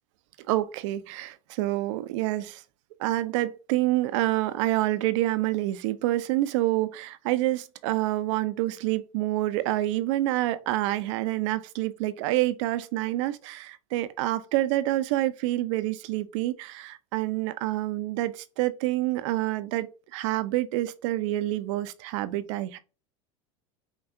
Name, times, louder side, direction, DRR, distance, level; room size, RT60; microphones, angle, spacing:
voice 1, 0.5-2.6 3.0-19.9 20.1-22.8, right 16 dB, 65° right, 0.5 m, -27 dB
5.8 x 2.3 x 2.6 m
hypercardioid pair, 100°, 17 cm